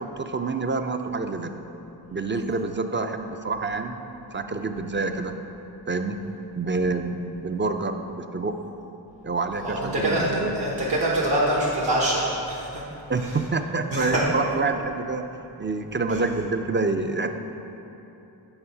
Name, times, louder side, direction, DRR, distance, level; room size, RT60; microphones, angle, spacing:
voice 1, 0.0-1.5 2.1-4.0 4.3-5.4 5.9-6.2 6.5-7.2 7.4-8.6 9.2-10.6 13.1-15.2 15.6-17.3, right 3 dB, 30° right, 7 dB, 0.3 m, -27 dB
voice 2, 9.6-12.8 13.9-14.2 16.1-16.2, right 1 dB, 65° right, -5 dB, 1.1 m, -24 dB
8.0 x 3.8 x 5.5 m, 3.0 s
wide cardioid pair, 55°, 43 cm